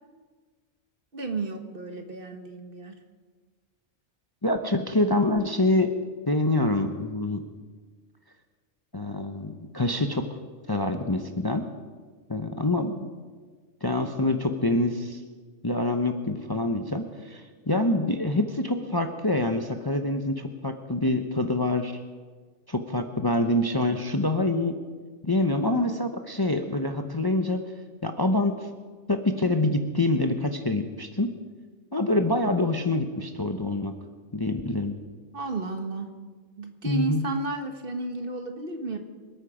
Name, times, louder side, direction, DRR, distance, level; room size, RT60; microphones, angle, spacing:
voice 1, 1.1-3.0 35.3-36.1 36.6-39.0, right 3 dB, 50° right, 5 dB, 1.6 m, -32 dB
voice 2, 4.4-5.9 6.3-7.4 8.9-10.3 10.7-11.6 12.3-13.1 13.8-15.2 15.6-21.9 22.7-24.8 25.2-27.6 28.0-28.7 29.1-31.3 31.9-33.9 34.3-35.0 36.8-37.2, left 2 dB, 20° left, 6 dB, 0.8 m, -26 dB
26.5 x 9.0 x 5.0 m, 1.5 s
omnidirectional pair, 1.2 m